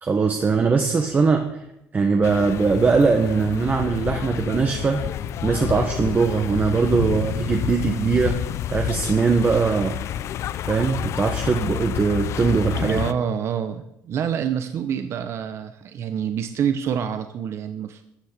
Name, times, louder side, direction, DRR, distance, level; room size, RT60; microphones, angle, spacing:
voice 1, 0.0-1.6 1.9-5.0 5.4-8.4 8.7-10.0 10.7-13.0, right 5 dB, 30° right, 4 dB, 1.4 m, -21 dB
sound 1, 2.2-13.1, left 11 dB, 60° left, 0.5 m, -29 dB
voice 2, 12.8-18.0, right 8 dB, 55° right, 9 dB, 0.9 m, -27 dB
13.0 x 6.5 x 8.1 m, 0.84 s
cardioid pair, 95°, 5 cm